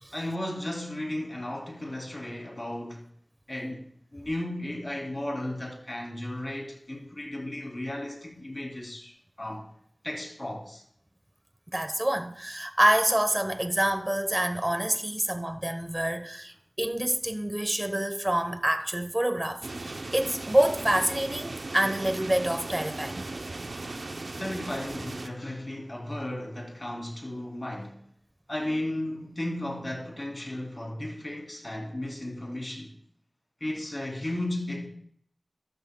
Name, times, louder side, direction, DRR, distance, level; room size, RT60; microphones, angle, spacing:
voice 1, 0.1-3.0 3.5-3.9 4.1-9.7 10.0-10.8 24.4-28.0 28.5-32.9 33.6-34.9, left 1 dB, 40° left, 3.0 m, -35 dB
voice 2, 11.7-23.3, right 1 dB, 25° right, 1.1 m, -27 dB
sound 1, 19.6-25.3, right 2 dB, 80° right, 0.6 m, -37 dB
13.5 x 12.5 x 2.3 m
wide cardioid pair, 55°, 0 cm